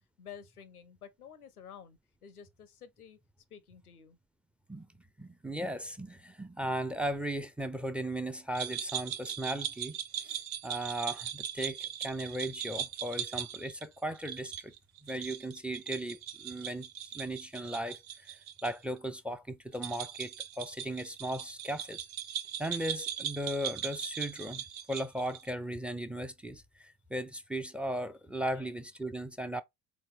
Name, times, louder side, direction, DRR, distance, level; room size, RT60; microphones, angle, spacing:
voice 1, 0.2-3.2 3.5-4.2 28.5-28.7, left 8 dB, 90° left, 0.6 m, -51 dB
voice 2, 5.2-14.7 15.0-18.4 18.6-22.1 22.6-29.6, right 1 dB, 5° right, 0.3 m, -37 dB
sound 1, 8.5-18.7 19.0-19.1 19.7-25.5, right 10 dB, 75° right, 0.7 m, -39 dB
4.0 x 3.8 x 3.0 m
figure-of-eight pair, 60°, 43 cm